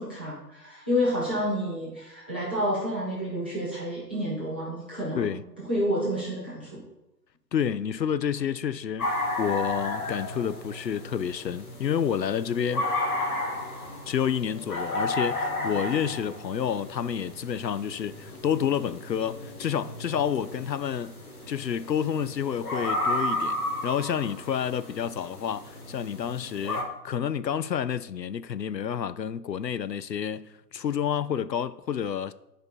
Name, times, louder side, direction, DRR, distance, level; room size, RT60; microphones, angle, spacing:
voice 1, 0.0-6.8, equal, 5° right, 0.7 m, -29 dB
voice 2, 7.5-9.1 9.4-12.9 14.1-21.2 21.5-23.6 23.8-32.3, left 8 dB, 80° left, 0.6 m, -29 dB
sound 1, 9.0-26.8, left 1 dB, 60° left, 2.0 m, -33 dB
10.0 x 5.1 x 4.3 m
figure-of-eight pair, 140°, 49 cm